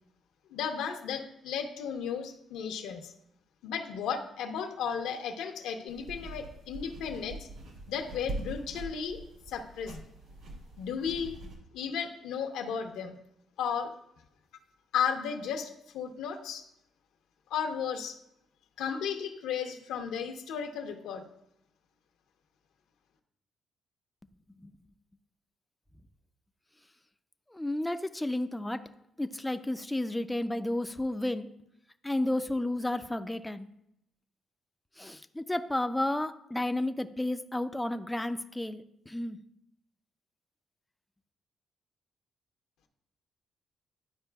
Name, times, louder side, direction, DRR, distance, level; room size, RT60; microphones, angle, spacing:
voice 1, 0.5-3.1 3.6-7.5 7.9-9.2 9.5-10.0 10.8-11.4 11.7-13.1 13.6-13.9 14.9-16.6 17.5-18.2 18.8-21.2, left 7 dB, 85° left, 5 dB, 0.9 m, -34 dB
sound 1, 5.9-11.5, right 2 dB, 80° right, 2.2 m, -43 dB
voice 2, 27.5-28.9 29.2-31.6 32.0-33.7 35.0-39.4, left 1 dB, 10° left, 9 dB, 0.4 m, -32 dB
12.0 x 4.8 x 2.3 m, 0.79 s
cardioid pair, 90°, 0 cm